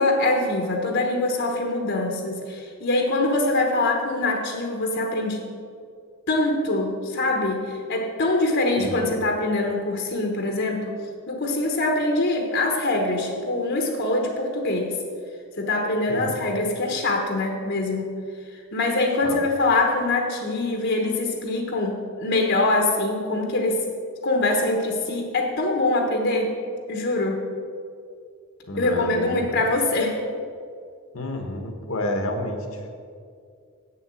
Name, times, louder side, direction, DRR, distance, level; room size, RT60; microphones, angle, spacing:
voice 1, 0.0-5.5 6.3-10.9 11.3-14.9 15.6-18.1 18.7-23.8 24.2-26.5 26.9-27.4 28.8-30.2, left 2 dB, 55° left, 2 dB, 1.1 m, -24 dB
voice 2, 28.7-29.6 31.1-32.9, left 1 dB, 75° left, 4 dB, 1.3 m, -30 dB
8.0 x 7.1 x 7.6 m, 2.3 s
head